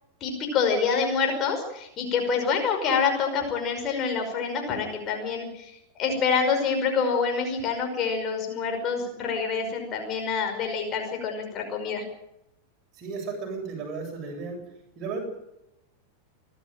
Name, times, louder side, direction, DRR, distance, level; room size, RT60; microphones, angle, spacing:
voice 1, 0.2-5.7 6.0-12.0, left 5 dB, 30° left, 3 dB, 5.4 m, -26 dB
voice 2, 12.9-14.6 15.0-15.2, right 4 dB, 35° right, 2 dB, 8.0 m, -34 dB
27.5 x 12.5 x 9.1 m, 0.85 s
figure-of-eight pair, 90°, 0 cm